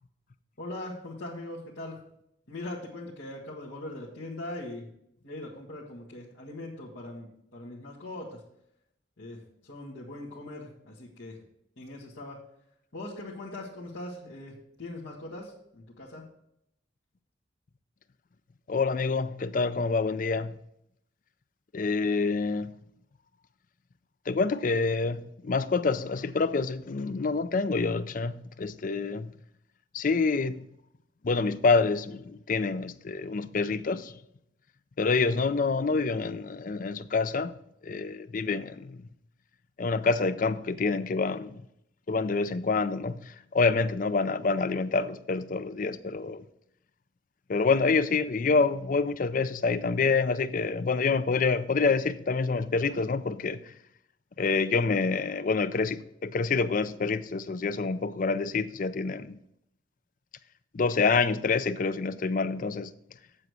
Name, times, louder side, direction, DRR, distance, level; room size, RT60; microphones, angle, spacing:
voice 1, 0.6-2.0 2.5-4.9 5.2-8.4 9.2-11.4 11.8-12.4 12.9-16.3, left 1 dB, 85° left, 1.7 m, -41 dB
voice 2, 18.7-20.6 21.7-22.7 24.3-29.3 29.9-30.7 31.2-34.1 35.0-37.5 37.8-39.1 39.8-41.6 42.1-46.5 47.5-53.7 54.4-59.4 60.7-62.9, left 4 dB, 45° left, 0.4 m, -27 dB
7.9 x 7.5 x 4.8 m
head